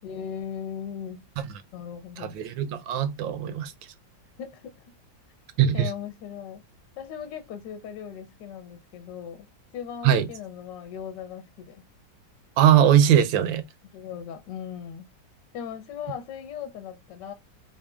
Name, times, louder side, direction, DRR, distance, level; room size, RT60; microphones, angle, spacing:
voice 1, 0.0-1.2 1.7-2.4 4.4-5.0 5.7-6.6 7.0-9.5 9.7-11.8 13.9-15.1 15.5-17.3, left 8 dB, 75° left, 1.3 m, -38 dB
voice 2, 2.2-3.7 5.6-5.9 10.0-10.3 12.6-13.6, right 10 dB, 85° right, 1.4 m, -20 dB
3.7 x 3.6 x 2.4 m
omnidirectional pair, 2.0 m